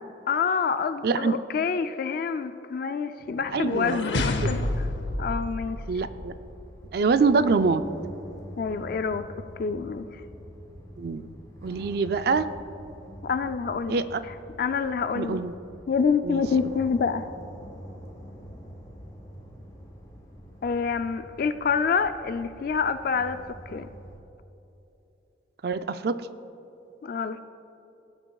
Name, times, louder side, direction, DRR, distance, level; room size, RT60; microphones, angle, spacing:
voice 1, 0.3-4.7 5.2-5.8 8.6-9.3 9.6-10.2 13.2-15.4 15.9-17.3 20.6-23.4 23.7-23.9 27.0-27.4, left 5 dB, 50° left, 10 dB, 0.3 m, -27 dB
voice 2, 1.0-1.3 3.5-4.1 4.4-4.5 5.9-6.3 6.9-7.8 11.0-11.4 11.6-12.5 13.9-14.2 15.2-15.5 16.2-16.4 25.6-26.2, right 4 dB, 55° right, 11 dB, 0.4 m, -25 dB
sound 1, 3.3-6.4, left 2 dB, 75° left, 0.7 m, -29 dB
sound 2, 4.5-24.2, equal, 20° left, 1.5 m, -45 dB
17.5 x 8.9 x 2.3 m, 3.0 s
head